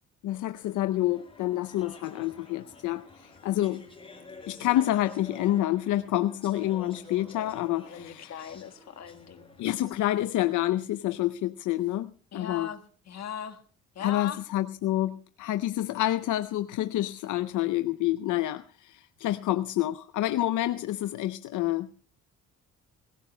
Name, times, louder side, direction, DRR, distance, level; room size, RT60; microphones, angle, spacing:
voice 1, 0.2-3.8 4.5-8.5 9.6-12.7 14.0-21.9, left 14 dB, 80° left, 0.6 m, -28 dB
Speech / Chatter, 0.5-9.9, left 3 dB, 15° left, 5.6 m, -49 dB
voice 2, 7.8-9.5 12.3-13.6 13.9-14.4, left 9 dB, 60° left, 1.6 m, -39 dB
23.0 x 16.0 x 2.2 m
cardioid pair, 90°, 30 cm